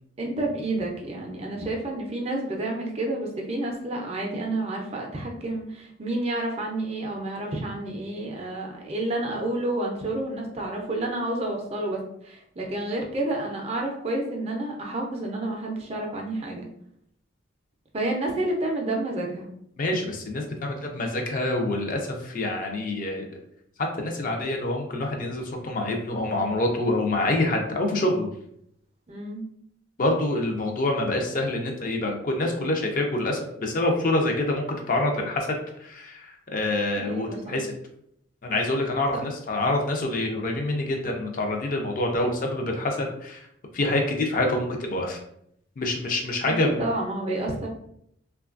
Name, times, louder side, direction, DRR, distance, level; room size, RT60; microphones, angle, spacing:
voice 1, 0.2-16.7 17.9-19.5 29.1-29.5 37.0-37.6 46.5-47.7, right 2 dB, 30° right, 0 dB, 0.4 m, -30 dB
voice 2, 19.8-23.3 23.8-28.3 30.0-37.7 38.4-43.4 43.7-45.2 45.8-46.9, left 2 dB, 40° left, 2 dB, 0.4 m, -26 dB
3.1 x 2.2 x 2.4 m, 0.73 s
head